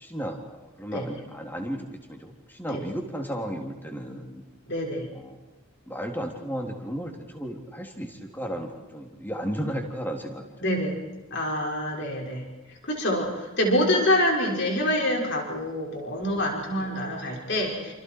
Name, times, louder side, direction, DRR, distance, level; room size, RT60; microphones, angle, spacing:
voice 1, 0.0-4.4 5.1-5.4 5.9-10.5 11.9-12.2 16.8-17.0, equal, 10° left, 2 dB, 3.4 m, -34 dB
voice 2, 4.7-5.1 10.6-11.0 11.3-12.4 12.7-17.9, left 1 dB, 55° left, 0 dB, 6.1 m, -26 dB
29.0 x 28.0 x 4.8 m, 1.1 s
head